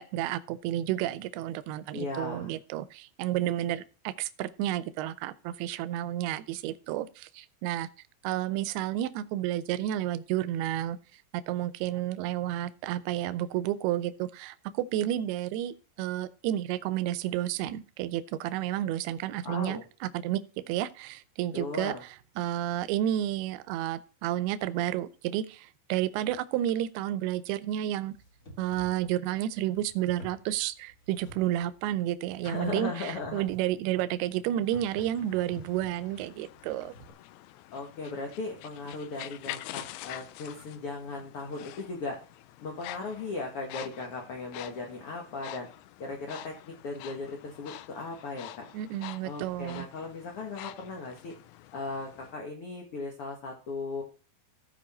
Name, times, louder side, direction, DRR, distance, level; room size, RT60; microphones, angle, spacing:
voice 1, 0.0-7.9 8.2-11.0 11.5-20.4 20.7-21.9 22.4-28.1 28.6-36.9 48.7-49.9, right 12 dB, 80° right, 2.5 m, -31 dB
voice 2, 1.9-2.5 19.4-19.8 21.5-22.0 32.4-33.4 37.7-42.2 42.6-45.7 46.0-48.6 49.2-51.3 51.7-54.0, left 3 dB, 65° left, 1.4 m, -37 dB
sound 1, 28.1-37.1, equal, 30° left, 1.5 m, -52 dB
sound 2, 34.6-52.3, left 15 dB, 85° left, 2.1 m, -46 dB
15.0 x 5.2 x 4.2 m
omnidirectional pair, 4.8 m